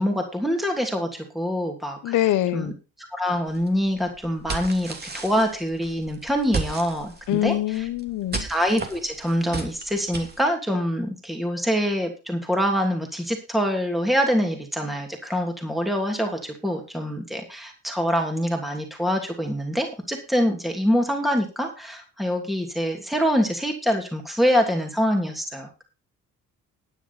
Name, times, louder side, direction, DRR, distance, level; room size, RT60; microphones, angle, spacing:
voice 1, 0.0-2.1 2.5-2.7 3.0-7.8 8.3-25.8, equal, ahead, 3 dB, 2.8 m, -25 dB
voice 2, 2.0-2.7 7.3-8.5, left 14 dB, 85° left, 13 dB, 1.3 m, -24 dB
sound 1, 3.5-10.4, right 4 dB, 35° right, 2.9 m, -35 dB
12.5 x 9.4 x 4.3 m, 0.30 s
cardioid pair, 90°, 30 cm